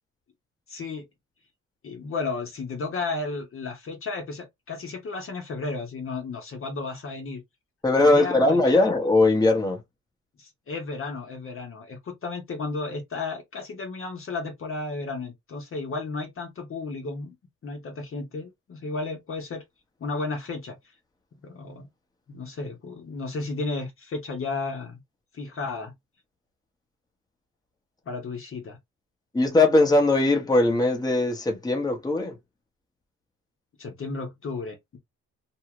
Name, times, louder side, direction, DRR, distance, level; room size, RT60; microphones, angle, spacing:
voice 1, 0.7-1.1 1.8-7.4 8.0-8.9 10.4-17.4 17.6-19.6 20.0-20.8 21.4-21.9 22.3-25.0 25.3-25.9 28.1-28.8 33.8-35.0, left 3 dB, 45° left, 1.0 m, -33 dB
voice 2, 7.8-9.8 29.3-32.3, left 2 dB, 15° left, 1.0 m, -20 dB
2.7 x 2.3 x 2.9 m
cardioid pair, 90°, 30 cm